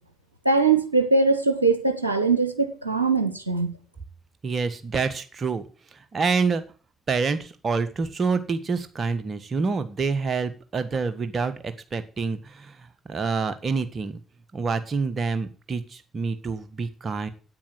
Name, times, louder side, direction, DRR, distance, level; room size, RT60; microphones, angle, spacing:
voice 1, 0.4-3.7, right 4 dB, 90° right, 1.0 m, -21 dB
voice 2, 4.4-5.6 5.9-6.6 7.1-14.2 14.5-17.3, right 4 dB, 40° right, 1.6 m, -27 dB
9.5 x 9.0 x 7.7 m
figure-of-eight pair, 45°, 0 cm